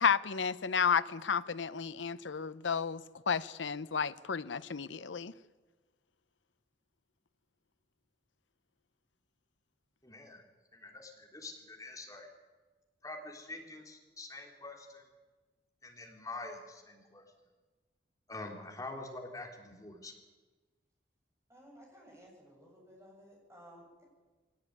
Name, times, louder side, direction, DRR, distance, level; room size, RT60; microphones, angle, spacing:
voice 1, 0.0-5.3, left 6 dB, 90° left, 15 dB, 0.7 m, -32 dB
voice 2, 10.0-10.4 10.7-12.3 13.0-15.1 15.8-17.2 18.3-20.1, left 2 dB, 20° left, 1 dB, 3.5 m, -45 dB
voice 3, 21.5-24.0, equal, 15° right, -1 dB, 7.5 m, -56 dB
22.5 x 18.0 x 9.7 m, 1.3 s
head